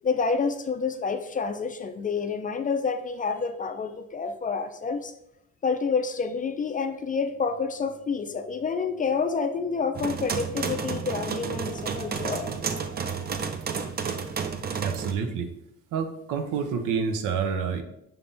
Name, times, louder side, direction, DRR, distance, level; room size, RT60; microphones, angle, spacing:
voice 1, 0.0-5.1 5.6-12.5, left 5 dB, 30° left, 8 dB, 0.4 m, -28 dB
sound 1, 6.4-13.4, right 1 dB, 50° right, 0.9 m, -48 dB
sound 2, 9.9-15.1, right 6 dB, 30° right, 0.5 m, -31 dB
voice 2, 14.8-15.5 15.9-17.8, right 6 dB, 85° right, 7 dB, 0.6 m, -28 dB
5.7 x 3.4 x 2.6 m, 0.81 s
cardioid pair, 90°, 30 cm